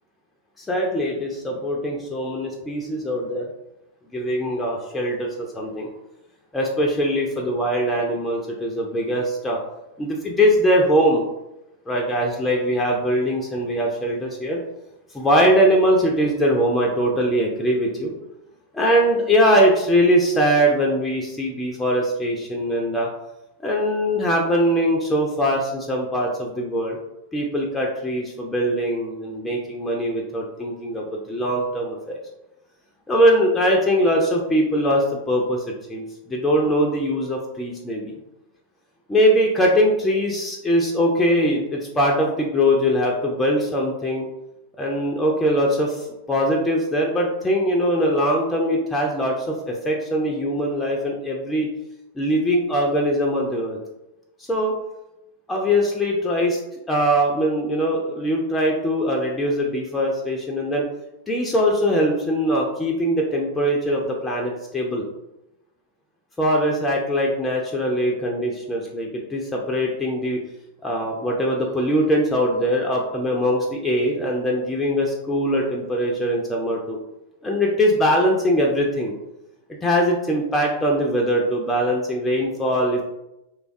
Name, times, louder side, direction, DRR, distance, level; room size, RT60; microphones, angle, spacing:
voice 1, 0.6-3.5 4.1-5.9 6.5-9.6 10.0-11.3 11.9-14.6 15.1-18.1 18.7-23.1 23.6-27.0 27.3-32.2 33.1-38.2 39.1-44.2 44.8-51.7 52.2-53.8 54.4-54.7 55.5-56.6 56.9-60.9 61.3-65.0 66.4-70.4 70.8-77.0 77.4-79.1 79.8-83.0, equal, 10° left, -1 dB, 0.4 m, -21 dB
3.2 x 2.2 x 2.5 m, 0.91 s
figure-of-eight pair, 90°, 0 cm